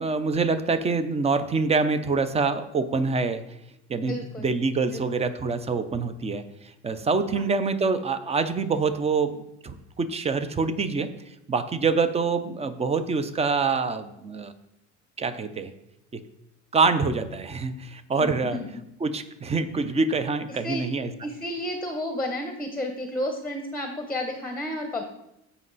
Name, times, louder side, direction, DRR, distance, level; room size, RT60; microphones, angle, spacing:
voice 1, 0.0-3.4 3.9-6.4 6.8-9.4 9.6-11.1 11.5-14.5 15.2-15.7 16.1-16.2 16.7-18.6 19.0-21.1, right 4 dB, 20° right, 11 dB, 0.6 m, -25 dB
voice 2, 4.1-4.5 4.9-5.0 7.3-7.4 18.2-18.7 20.5-25.0, left 1 dB, 5° left, 4 dB, 0.9 m, -32 dB
15.5 x 5.4 x 4.0 m, 0.84 s
cardioid pair, 160°, 32 cm